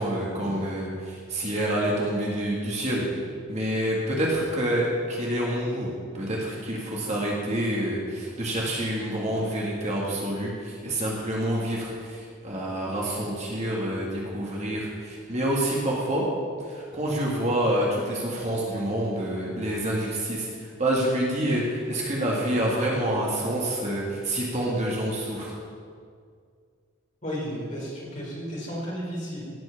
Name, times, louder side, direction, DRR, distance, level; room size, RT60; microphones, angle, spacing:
voice 1, 0.0-3.0 3.5-16.3 16.7-25.6, right 1 dB, 30° right, -3 dB, 2.0 m, -27 dB
voice 2, 27.2-29.4, equal, 35° left, -5 dB, 4.2 m, -33 dB
17.5 x 6.2 x 7.2 m, 2.1 s
head